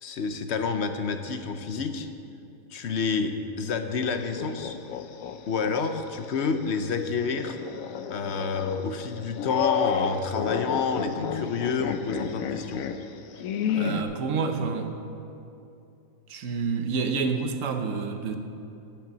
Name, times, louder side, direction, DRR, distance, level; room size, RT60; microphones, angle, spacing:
voice 1, 0.0-2.1 2.7-4.8 5.5-7.6 8.1-12.9, left 5 dB, 60° left, 7 dB, 0.9 m, -28 dB
sound 1, 4.1-5.7 6.2-6.3 7.3-14.0, left 7 dB, 80° left, 1.0 m, -32 dB
voice 2, 13.7-14.9 16.3-18.4, right 5 dB, 70° right, 6 dB, 1.2 m, -28 dB
11.5 x 6.8 x 6.8 m, 2.7 s
omnidirectional pair, 1.4 m